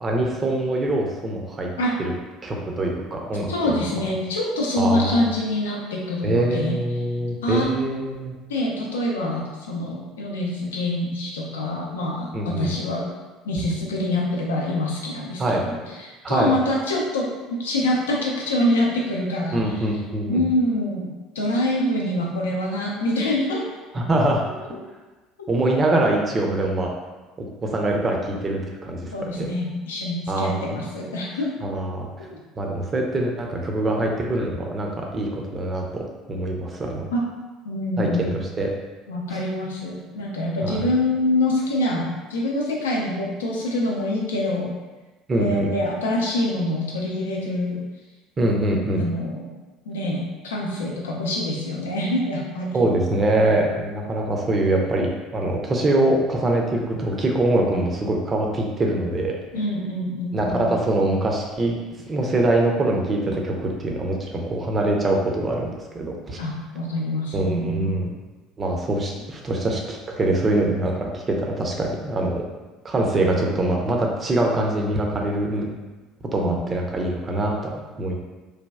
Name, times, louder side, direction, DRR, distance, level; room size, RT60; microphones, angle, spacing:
voice 1, 0.0-1.7 2.0-2.1 2.4-3.8 4.8-5.3 6.2-8.4 12.3-12.7 15.4-15.7 16.2-16.5 19.5-20.4 23.9-24.4 25.5-26.9 27.4-29.5 30.3-30.8 31.6-32.1 32.6-37.1 38.0-38.7 40.6-40.8 45.3-45.7 48.4-49.0 52.7-59.4 60.3-61.8 62.1-66.4 67.3-68.1 68.6-72.4 72.8-75.7 76.3-78.2, right 1 dB, 30° right, 0 dB, 0.5 m, -24 dB
voice 2, 3.5-6.8 7.4-7.7 8.5-13.1 13.4-19.6 20.3-21.1 21.3-23.6 25.4-25.5 29.1-31.5 32.3-32.4 37.1-37.2 37.6-38.4 39.1-44.7 45.4-47.8 49.0-49.5 49.9-52.8 59.5-60.7 66.4-68.0 76.4-76.7, left 1 dB, 75° left, -2 dB, 0.5 m, -25 dB
3.2 x 2.2 x 2.3 m, 1.2 s
figure-of-eight pair, 60°, 0 cm